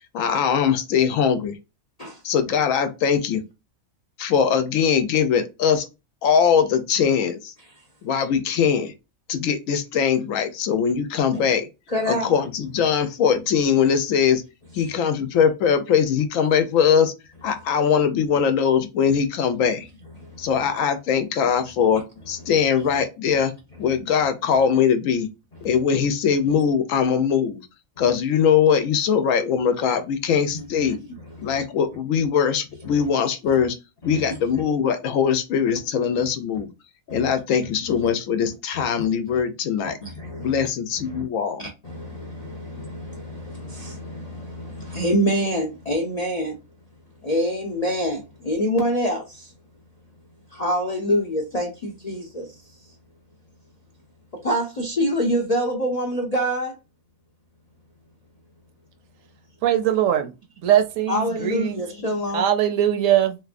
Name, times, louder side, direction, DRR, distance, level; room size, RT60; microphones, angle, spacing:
voice 1, 0.1-1.5 2.2-3.4 4.2-5.9 6.2-7.5 8.0-8.9 9.3-11.7 12.1-14.4 14.7-17.1 17.4-19.9 20.4-22.0 22.3-23.5 23.8-25.3 25.6-27.6 28.0-31.0 31.4-33.7 34.0-36.7 37.1-40.0 40.4-41.6, left 7 dB, 75° left, 0.9 m, -21 dB
voice 2, 11.9-12.3 20.2-20.5 30.5-30.9 31.3-31.6 34.0-34.1 37.1-37.3 37.9-38.0 38.7-38.8 40.0-40.7 41.0-41.2 41.6-46.6 47.2-49.5 50.5-52.5 54.4-56.8 61.1-62.4, equal, 50° left, 0.5 m, -26 dB
voice 3, 59.6-60.3 60.6-61.8 62.3-63.4, right 11 dB, 70° right, 0.9 m, -21 dB
3.3 x 2.8 x 2.4 m
omnidirectional pair, 1.5 m